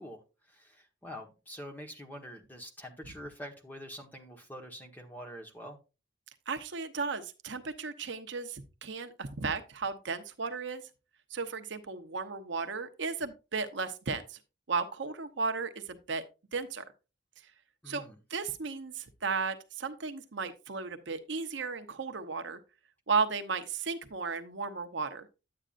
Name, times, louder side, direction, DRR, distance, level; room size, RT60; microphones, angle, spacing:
voice 1, 0.0-5.8 17.8-18.2, equal, 10° left, 1.3 m, -46 dB
voice 2, 6.5-10.8 11.3-14.4 14.7-16.2 16.5-16.8 17.9-18.0 18.3-22.6 23.1-25.3, right 4 dB, 65° right, 0.8 m, -34 dB
10.0 x 8.7 x 2.5 m
head